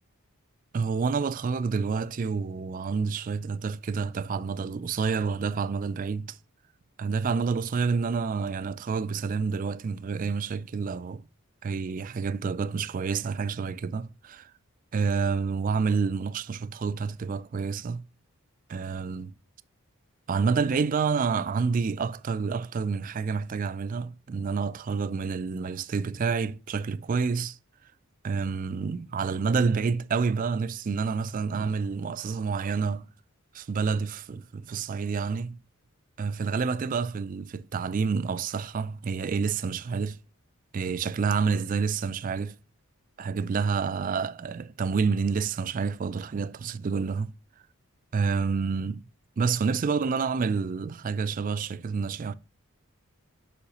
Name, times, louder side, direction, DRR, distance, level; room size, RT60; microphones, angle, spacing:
voice 1, 0.7-6.4 7.0-11.2 11.6-14.5 14.9-18.0 18.7-19.3 20.3-27.6 28.2-33.1 33.5-35.6 36.2-40.2 40.7-42.6 43.2-47.3 48.1-49.0 49.4-52.3, right 5 dB, 35° right, 0.3 m, -28 dB
8.4 x 5.7 x 2.9 m
head